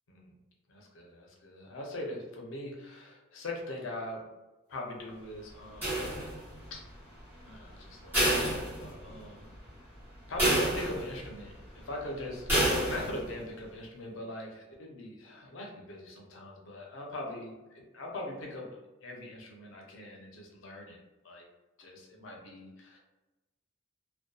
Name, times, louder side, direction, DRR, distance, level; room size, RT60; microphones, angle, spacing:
voice 1, 0.7-4.2 4.7-6.1 6.7-6.8 7.4-9.5 10.3-18.8 19.0-21.0 21.2-21.4 21.8-23.0, left 1 dB, 75° left, -1 dB, 0.6 m, -41 dB
sound 1, 5.8-6.6 8.1-9.3 9.7-9.8 10.4-11.3 12.5-13.3, right 1 dB, 10° right, 0.9 m, -28 dB
2.5 x 2.2 x 2.3 m, 1.1 s
head